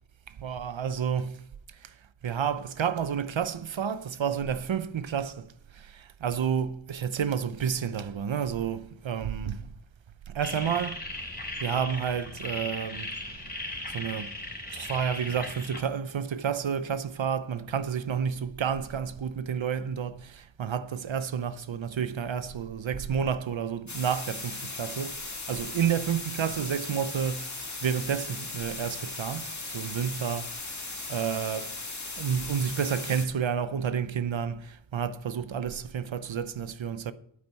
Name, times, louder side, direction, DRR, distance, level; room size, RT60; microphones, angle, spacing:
voice 1, 0.3-1.4 1.8-1.9 2.2-5.5 5.7-9.7 10.3-11.0 11.6-13.1 13.9-14.3 14.7-25.2 25.5-27.6 27.8-30.5 31.1-31.7 32.1-37.1, right 7 dB, 70° right, 0.7 m, -30 dB
sound 1, 10.4-15.8, left 1 dB, 20° left, 3.4 m, -37 dB
sound 2, 23.9-33.3, left 3 dB, 35° left, 2.0 m, -38 dB
9.2 x 8.5 x 5.4 m
wide cardioid pair, 50°, 49 cm